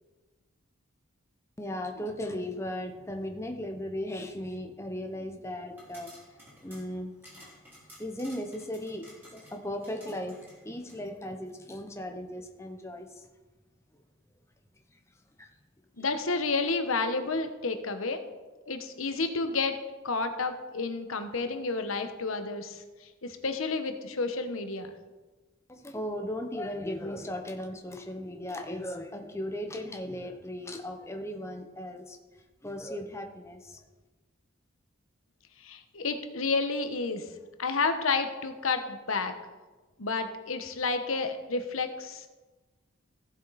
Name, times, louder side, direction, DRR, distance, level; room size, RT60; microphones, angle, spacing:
voice 1, 1.6-6.1 6.4-7.1 8.0-13.2 15.4-15.5 16.0-16.1 25.7-33.8, left 1 dB, 15° left, 4 dB, 0.8 m, -37 dB
sound 1, 5.7-11.0, equal, 10° right, 3.8 m, -54 dB
voice 2, 16.0-18.2 18.7-19.8 20.0-24.9 35.6-37.3 37.6-39.3 40.0-42.3, left 3 dB, 85° left, 8 dB, 1.1 m, -30 dB
15.0 x 7.3 x 4.1 m, 1.2 s
head